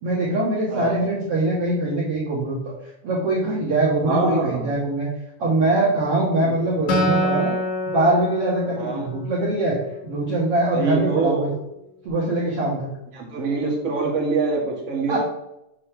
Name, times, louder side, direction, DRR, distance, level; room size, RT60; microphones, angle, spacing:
voice 1, 0.0-2.7 3.0-5.1 5.4-7.6 7.9-9.8 10.0-11.5 12.0-12.9 15.1-15.2, right 2 dB, 55° right, -5 dB, 1.9 m, -22 dB
voice 2, 4.0-4.7 6.4-6.5 8.8-9.0 10.7-11.4 13.1-15.2, right 3 dB, 30° right, -3 dB, 1.7 m, -24 dB
Acoustic guitar, 6.9-10.3, left 1 dB, 55° left, 2.9 m, -26 dB
7.5 x 4.1 x 6.6 m, 0.85 s
omnidirectional pair, 4.2 m